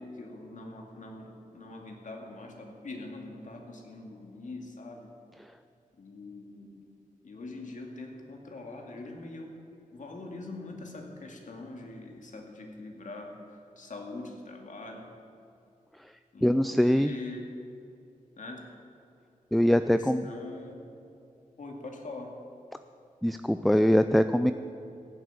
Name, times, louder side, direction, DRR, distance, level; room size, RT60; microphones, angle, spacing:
voice 1, 0.0-5.1 6.0-6.9 7.2-9.5 9.9-15.1 16.3-17.4 18.4-18.6 19.7-20.8 21.6-22.3 23.7-23.8, left 2 dB, 60° left, 1 dB, 2.4 m, -43 dB
voice 2, 16.4-17.1 19.5-20.2 23.2-24.5, equal, ahead, 10 dB, 0.4 m, -23 dB
15.0 x 7.9 x 9.1 m, 2.6 s
wide cardioid pair, 90°, 14 cm